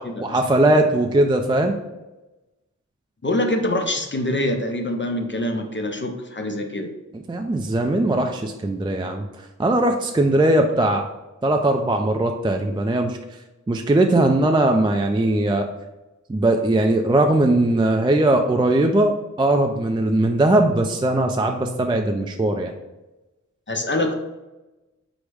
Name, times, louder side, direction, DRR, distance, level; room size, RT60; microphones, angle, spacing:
voice 1, 0.0-1.8 7.3-9.3 9.6-11.1 11.4-13.2 13.7-15.7 16.3-22.7, right 1 dB, 15° right, 4 dB, 0.3 m, -19 dB
voice 2, 3.2-6.9 23.7-24.1, left 1 dB, 35° left, 4 dB, 0.5 m, -24 dB
4.9 x 2.1 x 4.6 m, 1.1 s
wide cardioid pair, 65°, 32 cm